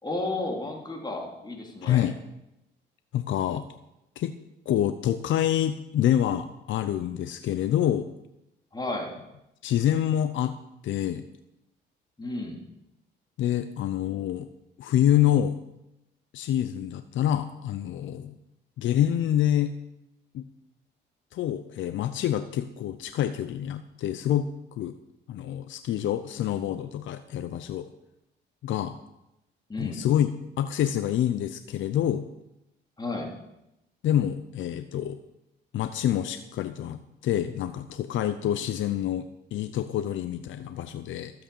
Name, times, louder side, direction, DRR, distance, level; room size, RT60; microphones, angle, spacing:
voice 1, 0.0-2.1 8.7-9.1 12.2-12.6 29.7-30.0 33.0-33.3, left 2 dB, 20° left, 0 dB, 3.4 m, -32 dB
voice 2, 1.8-2.2 3.1-3.6 4.2-4.3 4.7-8.1 9.6-10.6 10.8-11.2 13.4-14.5 14.8-15.6 16.3-18.4 18.8-19.7 20.3-20.4 21.3-24.5 24.8-25.0 25.3-27.9 28.6-29.0 29.8-30.3 30.6-32.3 34.0-35.2 35.7-41.3, left 11 dB, 75° left, 10 dB, 0.7 m, -27 dB
13.0 x 8.2 x 7.0 m, 0.88 s
cardioid pair, 90°, 20 cm